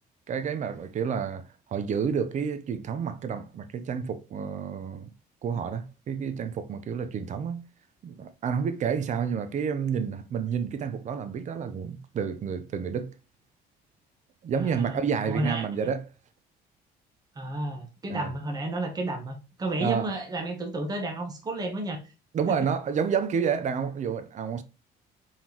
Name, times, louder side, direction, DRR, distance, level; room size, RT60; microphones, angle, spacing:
voice 1, 0.3-5.1 5.4-7.6 8.0-13.1 14.4-16.0 18.1-18.3 19.8-20.1 22.3-24.6, right 7 dB, 45° right, 0.7 m, -29 dB
voice 2, 14.5-15.0 15.2-15.7 17.3-22.0 22.5-22.7, right 2 dB, 25° right, 1.2 m, -32 dB
4.4 x 3.8 x 2.9 m
cardioid pair, 110°, 17 cm